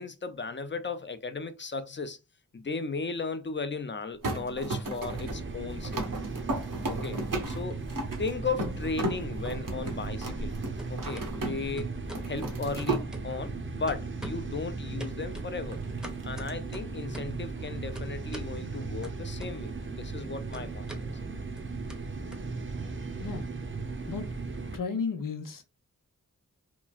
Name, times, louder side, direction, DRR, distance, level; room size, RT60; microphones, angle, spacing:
voice 1, 0.0-2.2 2.5-6.0 6.9-7.2 7.5-7.8 8.2-10.5 10.9-12.0 12.2-15.8 16.2-21.1, left 4 dB, 35° left, 0.5 m, -36 dB
sound 1, 4.2-11.8 12.1-13.1 15.7-16.5, right 2 dB, 80° right, 0.8 m, -35 dB
sound 2, 5.0-24.8, right 3 dB, 40° right, 0.6 m, -37 dB
sound 3, 7.8-8.6 8.9-10.5 10.8-11.3 11.8-12.3 12.8-13.6 13.9-14.6 15.0-17.4 18.0-18.6 19.0-19.9 20.1-23.0, equal, ahead, 0.7 m, -46 dB
voice 2, 24.7-25.6, left 5 dB, 85° left, 0.6 m, -33 dB
2.9 x 2.3 x 2.4 m
wide cardioid pair, 50°, 32 cm